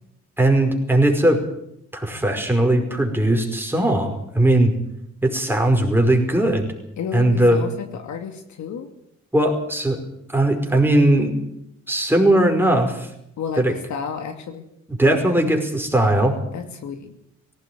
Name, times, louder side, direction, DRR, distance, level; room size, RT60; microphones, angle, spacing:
voice 1, 0.4-1.4 1.9-4.7 5.2-6.7 7.1-7.6 9.3-10.0 10.3-11.4 11.9-13.1 13.6-13.7 15.0-16.4, right 1 dB, 5° right, 3 dB, 5.1 m, -18 dB
voice 2, 7.0-8.9 13.4-14.6 16.5-17.1, left 6 dB, 70° left, 6 dB, 2.6 m, -31 dB
18.0 x 16.5 x 9.5 m, 0.78 s
cardioid pair, 90°, 30 cm